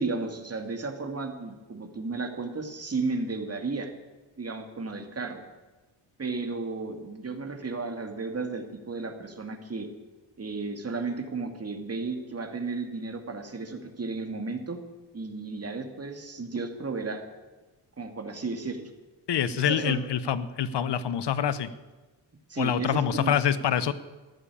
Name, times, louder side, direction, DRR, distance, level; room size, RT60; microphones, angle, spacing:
voice 1, 0.0-3.9 4.4-5.4 6.2-9.9 10.4-14.8 15.1-17.2 18.0-18.9 19.5-20.0 22.5-23.4, right 3 dB, 30° right, 5 dB, 2.6 m, -33 dB
voice 2, 19.3-21.7 22.6-23.9, left 9 dB, 60° left, 15 dB, 1.2 m, -26 dB
13.5 x 11.0 x 8.7 m, 1.2 s
cardioid pair, 70°, 46 cm